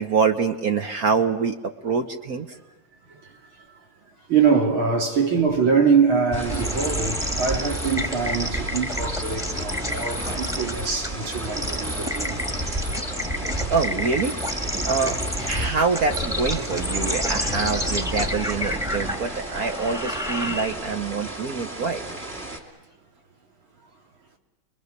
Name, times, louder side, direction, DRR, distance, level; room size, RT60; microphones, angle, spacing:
voice 1, 0.0-1.6 1.8-2.5 13.7-14.4 14.8-15.2 15.5-22.0, right 5 dB, 55° right, 1.4 m, -25 dB
voice 2, 3.1-3.7 4.3-12.4, right 5 dB, 85° right, 3.6 m, -23 dB
sound 1, 6.3-22.6, right 1 dB, 30° right, 2.9 m, -34 dB
sound 2, 6.5-21.0, equal, ahead, 1.4 m, -29 dB
29.0 x 22.0 x 6.6 m
omnidirectional pair, 2.2 m